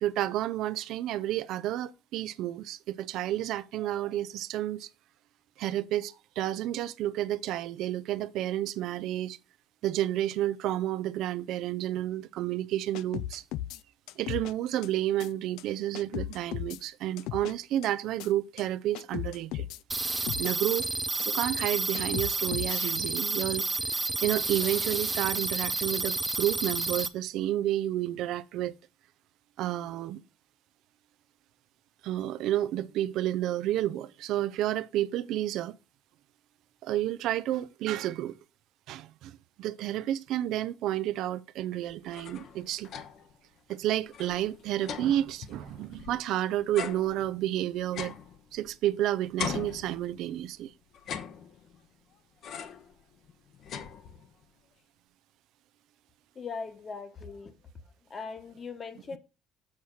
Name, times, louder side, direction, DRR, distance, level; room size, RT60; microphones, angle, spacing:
voice 1, 0.0-4.9 5.6-9.4 9.8-13.4 14.2-19.7 20.4-20.9 21.2-23.7 24.2-28.8 29.6-30.2 32.0-35.8 36.8-38.4 38.9-42.9 43.7-48.1 48.5-50.7, right 13 dB, 75° right, 0.4 m, -30 dB
sound 1, 12.9-13.8 14.1-14.5 14.8-14.9 15.2-15.3 15.6-15.7 15.9-16.8 17.2-17.5 17.8-17.9 18.2-18.3 18.6-18.7 18.9-19.8 20.2-20.5 20.8-20.9 21.2-21.3 21.6-21.7 21.9-22.9, left 14 dB, 85° left, 0.3 m, -36 dB
sound 2, 19.9-27.1, right 3 dB, 15° right, 0.6 m, -30 dB
sound 3, 41.9-43.4 43.7-43.8 44.1-46.3 46.7-49.0 49.4-50.5 50.9-51.9 52.4-52.9 53.3-54.4, left 7 dB, 60° left, 1.0 m, -40 dB
voice 2, 56.3-57.5 58.1-59.2, left 5 dB, 35° left, 1.2 m, -39 dB
7.3 x 4.3 x 6.2 m
cardioid pair, 115°, 0 cm